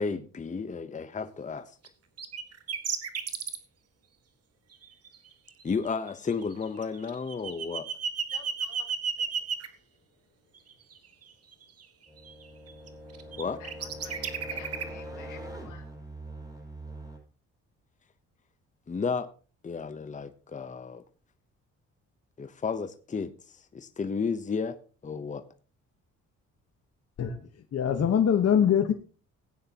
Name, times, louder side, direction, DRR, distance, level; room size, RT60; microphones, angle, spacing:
voice 1, 0.0-1.7 5.6-7.9 13.4-13.6 18.9-19.3 19.6-21.0 22.4-24.8 25.0-25.4, left 5 dB, 25° left, 10 dB, 0.9 m, -32 dB
sound 1, 1.8-1.9 2.2-3.6 4.7-5.2 5.5-9.7 10.6-11.8 12.3-12.9 13.1-14.8, right 7 dB, 55° right, 1.7 m, -33 dB
voice 2, 8.3-8.9 9.2-9.3 13.6-15.8 27.2-27.4, left 9 dB, 90° left, 2 dB, 2.9 m, -51 dB
sound 2, 12.1-17.2, right 1 dB, 10° right, 5.8 m, -43 dB
voice 3, 27.7-28.9, left 8 dB, 55° left, 6 dB, 1.3 m, -22 dB
17.5 x 9.3 x 2.9 m, 0.36 s
cardioid pair, 90°, 30 cm